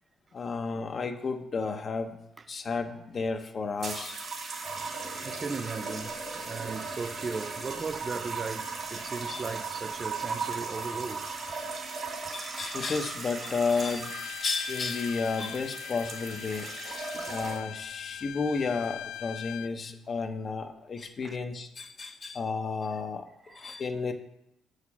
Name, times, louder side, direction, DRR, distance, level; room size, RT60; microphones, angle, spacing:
voice 1, 0.3-2.2 2.5-4.2 9.3-9.5 12.3-17.0 17.3-24.1, left 4 dB, 45° left, 0.8 m, -32 dB
sound 1, 3.8-17.8 18.7-19.0, right 4 dB, 55° right, 2.4 m, -37 dB
voice 2, 5.2-11.6 17.1-17.3 21.2-21.4 23.5-23.8, right 4 dB, 35° right, 0.3 m, -37 dB
Bowed string instrument, 14.0-19.7, left 12 dB, 90° left, 0.3 m, -41 dB
6.6 x 5.7 x 7.1 m
cardioid pair, 90°, 0 cm